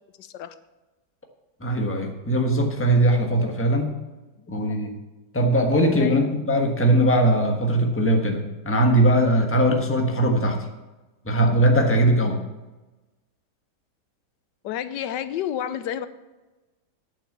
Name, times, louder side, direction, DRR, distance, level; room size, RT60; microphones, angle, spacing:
voice 1, 0.2-0.5 4.4-4.9 6.0-6.3 14.6-16.1, left 10 dB, 80° left, 13 dB, 1.3 m, -31 dB
voice 2, 1.6-3.9 4.5-4.9 5.3-10.6 11.3-12.4, right 1 dB, 10° left, 3 dB, 1.1 m, -20 dB
8.8 x 7.4 x 7.4 m, 1.1 s
omnidirectional pair, 1.8 m